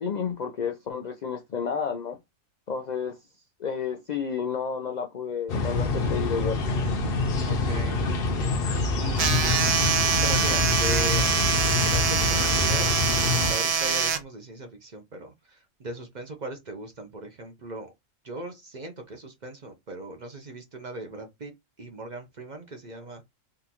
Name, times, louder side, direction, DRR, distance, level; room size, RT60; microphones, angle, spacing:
voice 1, 0.0-2.2 2.7-3.1 3.6-6.6, left 6 dB, 80° left, 0.3 m, -31 dB
sound 1, 5.5-13.5, left 3 dB, 55° left, 0.7 m, -26 dB
voice 2, 7.4-8.0 8.5-9.8 10.2-11.3 11.7-17.9 18.2-21.5 21.8-23.2, right 2 dB, 45° right, 0.6 m, -39 dB
sound 2, 9.2-14.2, right 6 dB, 80° right, 0.3 m, -24 dB
3.7 x 2.4 x 2.8 m
omnidirectional pair, 1.4 m